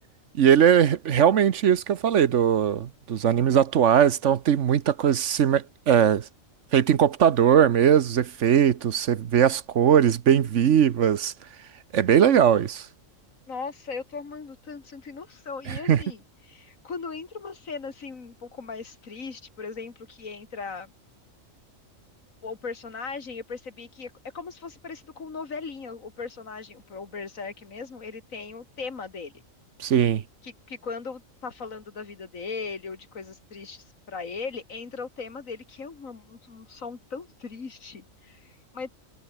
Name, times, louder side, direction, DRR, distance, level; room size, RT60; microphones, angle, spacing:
voice 1, 0.3-6.3 6.7-11.3 11.9-12.8 15.7-16.0 29.8-30.2, right 9 dB, 65° right, 1.2 m, -20 dB
voice 2, 13.5-20.9 22.4-29.3 30.4-39.0, left 4 dB, 80° left, 2.7 m, -38 dB
omnidirectional pair, 1.4 m